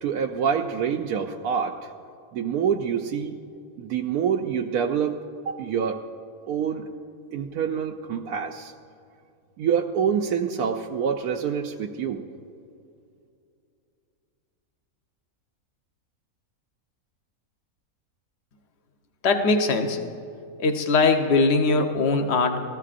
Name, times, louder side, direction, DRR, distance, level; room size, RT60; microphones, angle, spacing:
voice 1, 0.0-1.9 2.3-3.4 3.8-6.0 6.5-6.9 7.3-8.7 9.6-12.2, right 7 dB, 90° right, 2 dB, 1.1 m, -26 dB
voice 2, 19.2-20.0 20.6-22.6, left 3 dB, 50° left, 4 dB, 1.1 m, -21 dB
19.0 x 14.5 x 2.5 m, 2.5 s
omnidirectional pair, 1.6 m